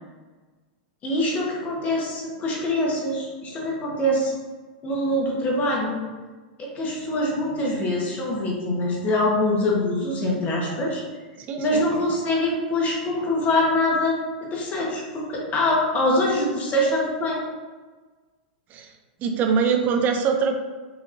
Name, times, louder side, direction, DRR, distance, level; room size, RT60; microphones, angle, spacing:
voice 1, 1.0-4.4 4.8-6.0 6.6-11.0 11.6-14.1 14.4-17.4, left 1 dB, 30° left, -3 dB, 1.1 m, -24 dB
voice 2, 11.4-11.8 18.7-20.5, right 6 dB, 35° right, 5 dB, 0.5 m, -23 dB
4.9 x 2.9 x 2.5 m, 1.3 s
hypercardioid pair, 120°, 5 cm